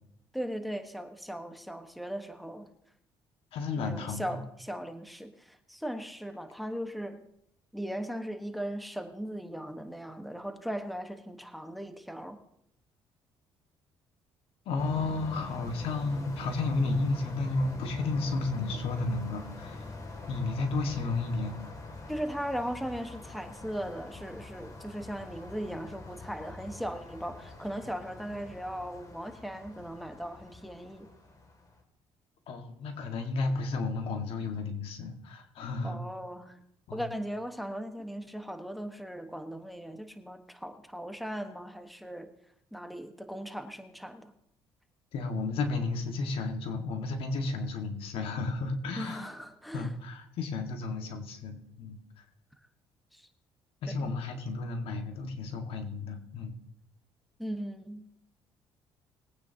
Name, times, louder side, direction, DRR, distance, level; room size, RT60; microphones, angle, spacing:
voice 1, 0.3-2.7 3.8-7.2 7.7-12.4 22.1-31.1 35.8-36.6 36.9-42.3 42.7-44.3 49.0-49.9 53.1-53.3 54.0-54.1 57.4-58.0, equal, ahead, 7 dB, 1.3 m, -38 dB
voice 2, 3.5-4.4 14.7-19.9 20.3-21.6 32.5-36.0 36.9-37.0 45.1-49.3 49.7-52.0 53.8-56.5, left 3 dB, 75° left, 5 dB, 1.8 m, -32 dB
sound 1, 14.8-31.8, left 3 dB, 35° left, 2.6 m, -45 dB
21.0 x 9.3 x 2.9 m, 0.75 s
cardioid pair, 85°, 10 cm